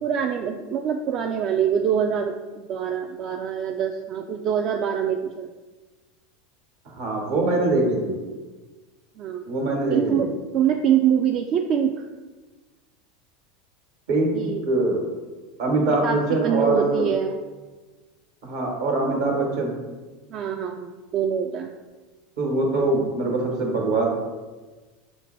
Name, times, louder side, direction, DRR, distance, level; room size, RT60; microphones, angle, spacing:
voice 1, 0.0-5.5 7.4-7.7 9.2-9.5 9.9-12.1 14.3-14.7 15.8-17.4 20.3-21.7, right 8 dB, 50° right, 4 dB, 0.3 m, -25 dB
voice 2, 7.0-8.1 9.4-10.3 14.1-15.0 15.6-17.1 18.4-19.7 22.4-24.1, right 2 dB, 75° right, 0 dB, 1.2 m, -23 dB
5.5 x 2.2 x 4.3 m, 1.3 s
hypercardioid pair, 90°, 0 cm